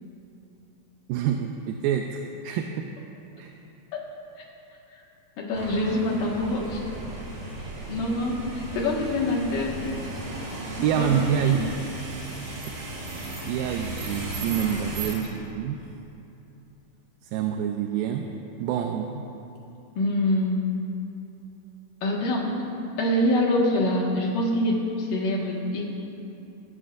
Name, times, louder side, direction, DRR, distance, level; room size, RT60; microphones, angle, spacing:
voice 1, 1.1-2.9 3.4-3.5 10.8-11.7 13.4-15.8 17.3-18.3 18.6-19.3, right 9 dB, 80° right, 3 dB, 2.4 m, -27 dB
voice 2, 5.4-6.8 7.9-9.8 10.7-11.6 20.0-20.6 22.0-22.6 23.0-25.8, left 1 dB, 65° left, -2 dB, 3.1 m, -25 dB
sound 1, 5.5-15.2, right 2 dB, 60° right, 4.5 m, -35 dB
26.5 x 14.0 x 2.5 m, 2.9 s
omnidirectional pair, 4.3 m